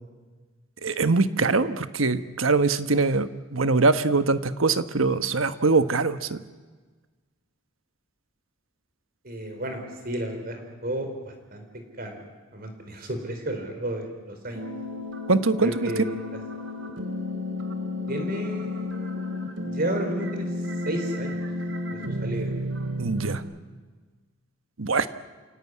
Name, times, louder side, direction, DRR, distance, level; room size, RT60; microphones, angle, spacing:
voice 1, 0.8-6.4 15.3-16.0 23.0-23.4 24.8-25.1, right 3 dB, 80° right, 11 dB, 1.2 m, -23 dB
voice 2, 9.2-11.6 12.0-12.2 12.5-14.7 15.6-16.1 18.1-19.2 19.7-20.5 20.8-21.4 21.9-22.5, right 1 dB, 45° right, 5 dB, 4.7 m, -32 dB
sound 1, 14.5-23.4, left 1 dB, 65° right, 2.7 m, -32 dB
29.0 x 17.0 x 9.8 m, 1.4 s
head